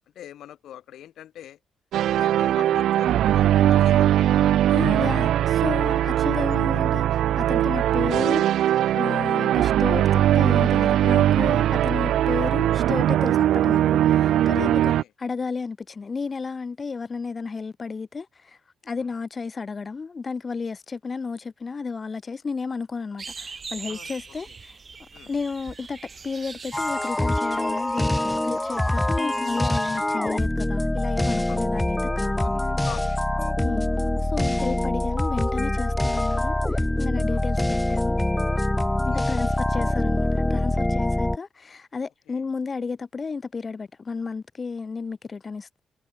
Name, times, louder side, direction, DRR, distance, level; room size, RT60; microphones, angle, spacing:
voice 1, 0.1-1.6 2.1-4.2 6.0-6.2 12.3-12.6 14.9-15.1 23.9-24.1 24.5-24.6 25.1-25.3 31.5-31.6 32.4-33.6 37.3-37.5 38.9-39.4 42.3-42.4, left 11 dB, 80° left, 3.0 m, -44 dB
sound 1, 1.9-15.0, right 12 dB, 85° right, 0.5 m, -20 dB
voice 2, 4.7-24.8 25.3-32.7 33.6-38.2 39.0-45.8, left 4 dB, 30° left, 1.0 m, -32 dB
sound 2, 23.2-30.1, right 5 dB, 30° right, 1.3 m, -42 dB
sound 3, 26.7-41.4, left 1 dB, 5° left, 0.7 m, -24 dB
cardioid pair, 150°, 0 cm